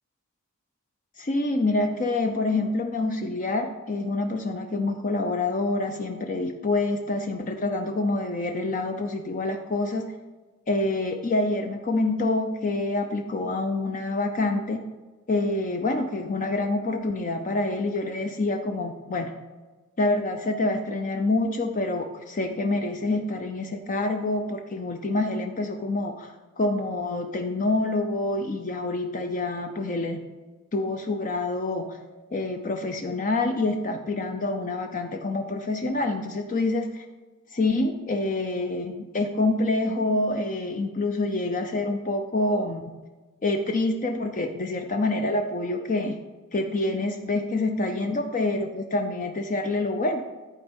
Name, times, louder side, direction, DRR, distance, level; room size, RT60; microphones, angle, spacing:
voice 1, 1.2-10.1 10.7-14.8 15.3-19.3 20.0-26.3 26.6-30.2 30.7-32.0 32.3-37.0 37.5-42.8 43.4-46.2 46.5-50.2, left 2 dB, 35° left, 5 dB, 0.5 m, -27 dB
11.0 x 4.4 x 5.2 m, 1.3 s
head